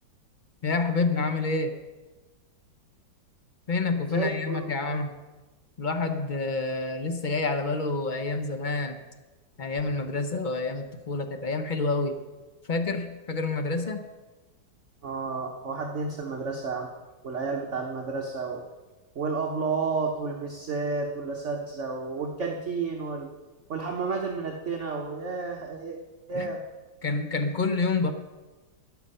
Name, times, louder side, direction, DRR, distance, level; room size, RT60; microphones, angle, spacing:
voice 1, 0.6-1.7 3.7-5.1 5.8-9.0 9.6-12.2 12.7-14.0 26.3-26.6 27.0-28.1, left 3 dB, 45° left, 7 dB, 0.6 m, -28 dB
voice 2, 4.1-5.0 15.0-16.9 17.2-18.6 19.1-23.3 23.7-26.0 26.3-26.6, right 4 dB, 45° right, 1 dB, 1.2 m, -31 dB
13.0 x 11.0 x 5.5 m, 1.2 s
omnidirectional pair, 2.1 m